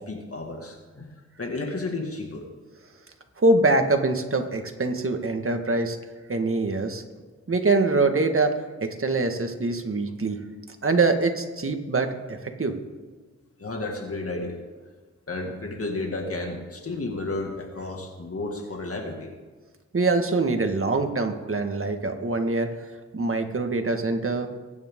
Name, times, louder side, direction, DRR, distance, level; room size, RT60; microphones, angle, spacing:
voice 1, 0.0-2.5 13.6-14.6 15.3-19.3, left 2 dB, 50° left, 2 dB, 2.1 m, -32 dB
voice 2, 3.4-6.0 6.3-7.0 7.5-10.4 10.8-12.7 19.9-22.7 23.1-24.5, right 3 dB, 45° right, 5 dB, 1.8 m, -24 dB
23.0 x 10.0 x 3.8 m, 1.4 s
cardioid pair, 60°, 30 cm